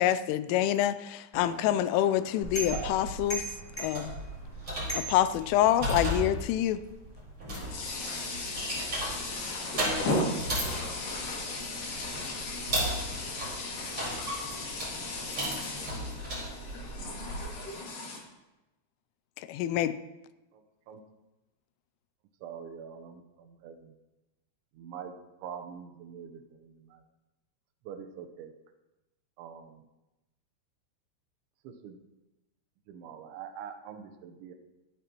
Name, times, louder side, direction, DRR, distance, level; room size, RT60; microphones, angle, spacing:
voice 1, 0.0-3.4 3.8-4.1 4.9-6.8 19.5-20.0, left 12 dB, 85° left, 13 dB, 3.1 m, -26 dB
sound 1, 1.3-6.0, right 2 dB, 15° left, 1.5 m, -41 dB
sound 2, 2.4-17.5, right 1 dB, 30° right, 5.3 m, -36 dB
voice 2, 7.5-18.2, left 2 dB, 50° left, -2 dB, 3.4 m, -36 dB
voice 3, 20.5-21.0 22.4-24.0 24.7-25.2 25.4-27.0 27.9-28.5 29.4-29.8 31.6-32.0 32.9-34.6, right 7 dB, 75° right, 6 dB, 3.1 m, -44 dB
24.0 x 9.1 x 3.0 m, 1.0 s
omnidirectional pair, 5.7 m